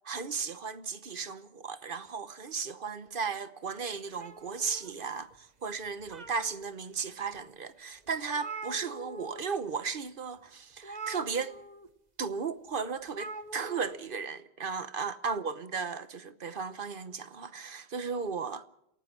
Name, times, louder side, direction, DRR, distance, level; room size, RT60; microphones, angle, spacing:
voice 1, 0.0-11.6 12.2-18.7, right 5 dB, 60° right, 1.1 m, -35 dB
sound 1, 4.1-5.4 5.8-6.7 7.3-7.4 7.8-7.9 8.1-9.4 9.7-9.9 10.8-11.9 13.1-13.9, right 3 dB, 45° right, 1.4 m, -43 dB
27.5 x 18.0 x 5.9 m
omnidirectional pair, 1.1 m